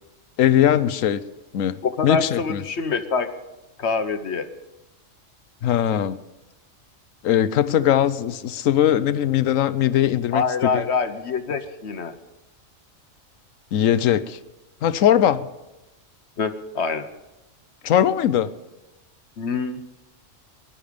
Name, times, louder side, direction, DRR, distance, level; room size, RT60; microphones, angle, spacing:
voice 1, 0.4-1.2 1.5-2.6 5.6-6.2 7.2-10.8 13.7-14.4 14.8-15.5 17.8-18.5, left 10 dB, 85° left, 15 dB, 1.1 m, -20 dB
voice 2, 1.8-3.3 3.8-4.5 10.3-12.1 16.4-17.1 19.4-19.8, left 5 dB, 60° left, 9 dB, 1.2 m, -25 dB
21.0 x 11.5 x 5.1 m, 1.0 s
omnidirectional pair, 1.4 m